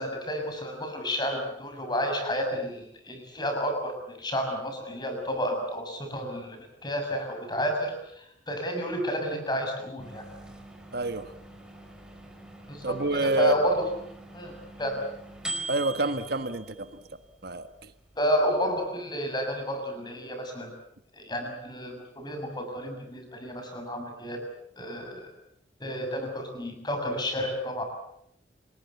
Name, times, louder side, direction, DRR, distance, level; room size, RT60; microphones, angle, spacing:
voice 1, 0.0-10.3 12.7-13.9 14.3-15.0 18.2-20.7 21.1-24.4 24.8-25.3 25.8-27.8, equal, 25° left, 4 dB, 6.8 m, -31 dB
sound 1, 10.0-18.9, right 2 dB, 5° right, 4.5 m, -43 dB
voice 2, 10.9-11.3 12.8-13.6 15.7-17.0 17.4-17.9, right 2 dB, 55° right, 10 dB, 1.5 m, -28 dB
29.5 x 21.0 x 8.2 m, 0.73 s
head